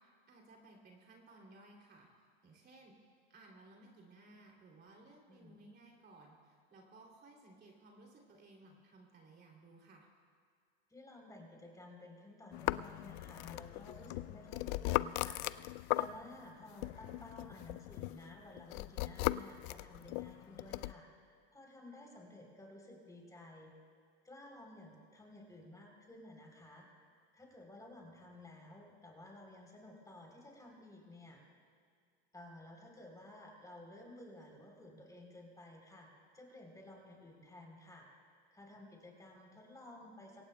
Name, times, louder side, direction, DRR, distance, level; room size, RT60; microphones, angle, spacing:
voice 1, 0.0-2.9 3.3-10.1, right 2 dB, 30° right, 0 dB, 2.9 m, -59 dB
voice 2, 10.9-23.7 24.2-26.9 27.3-31.4 32.3-36.1 36.3-40.5, left 1 dB, 10° left, 1 dB, 3.5 m, -54 dB
sound 1, 12.5-16.5 16.8-20.9, left 18 dB, 55° left, 0.4 m, -38 dB
24.0 x 18.0 x 2.3 m, 2.2 s
hypercardioid pair, 100°, 31 cm